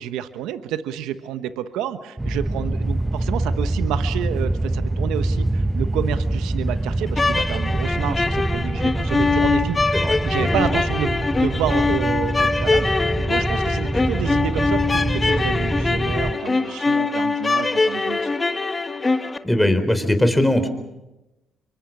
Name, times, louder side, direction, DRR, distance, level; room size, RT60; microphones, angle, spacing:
voice 1, 0.0-18.3, right 10 dB, 85° right, 11 dB, 1.1 m, -29 dB
sound 1, 2.2-16.3, right 2 dB, 15° right, 0.7 m, -25 dB
sound 2, 7.1-19.4, left 3 dB, 25° left, 1.3 m, -23 dB
voice 2, 19.4-20.7, left 1 dB, 5° left, 8 dB, 4.2 m, -19 dB
26.0 x 23.5 x 6.1 m, 1.0 s
supercardioid pair, 60°, 0 cm